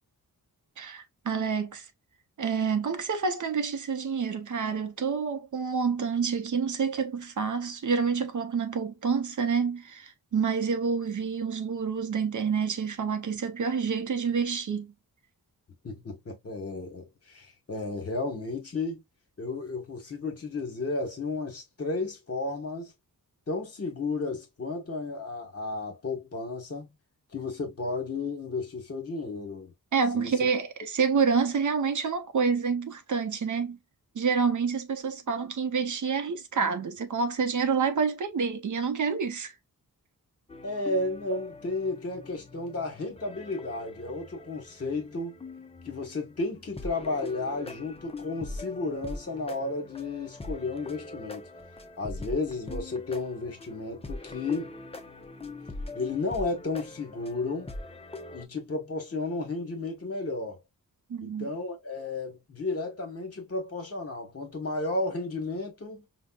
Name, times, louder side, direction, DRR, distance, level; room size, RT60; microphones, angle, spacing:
voice 1, 0.8-1.9 2.4-14.9 29.9-33.8 34.1-39.5 61.1-61.5, right 5 dB, 60° right, 0.6 m, -28 dB
voice 2, 15.8-19.0 19.4-22.9 23.5-26.9 27.3-29.7 30.1-30.3 40.6-45.4 45.8-51.5 52.0-54.7 55.9-57.7 58.3-60.6 61.2-66.1, left 3 dB, 45° left, 1.2 m, -33 dB
sound 1, 40.5-58.4, left 2 dB, 15° left, 0.5 m, -42 dB
5.1 x 2.2 x 2.3 m
wide cardioid pair, 150°, 35 cm